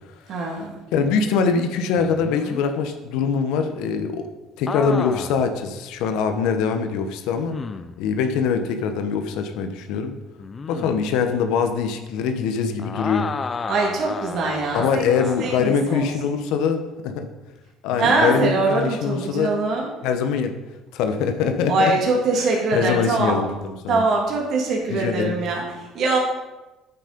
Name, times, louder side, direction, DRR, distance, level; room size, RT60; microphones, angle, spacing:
voice 1, 0.3-0.7 13.7-16.1 18.0-19.9 21.7-23.4 23.9-26.2, right 3 dB, 60° right, -1 dB, 2.8 m, -23 dB
voice 2, 0.9-4.2 4.6-7.6 8.0-10.2 10.7-13.2 14.7-17.3 17.8-19.5 20.0-20.5 20.9-21.9 22.4-24.0 24.9-25.4, left 6 dB, 80° left, 7 dB, 1.1 m, -23 dB
sound 1, 2.0-2.6 4.7-5.5 6.1-6.2 7.5-8.0 10.4-11.0 12.8-15.7 17.9-18.3, left 4 dB, 30° left, 0.6 m, -32 dB
9.1 x 8.3 x 5.3 m, 1.1 s
cardioid pair, 100°, 0 cm